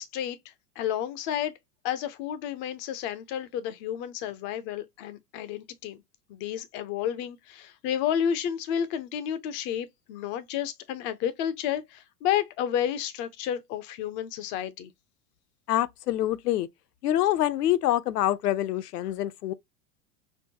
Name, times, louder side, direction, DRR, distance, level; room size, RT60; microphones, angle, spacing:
voice 1, 0.0-1.6 1.8-6.0 6.3-14.9, left 9 dB, 30° left, 0.3 m, -31 dB
voice 2, 15.7-16.7 17.0-19.5, left 13 dB, 80° left, 0.6 m, -26 dB
4.5 x 2.0 x 2.8 m
hypercardioid pair, 90°, 47 cm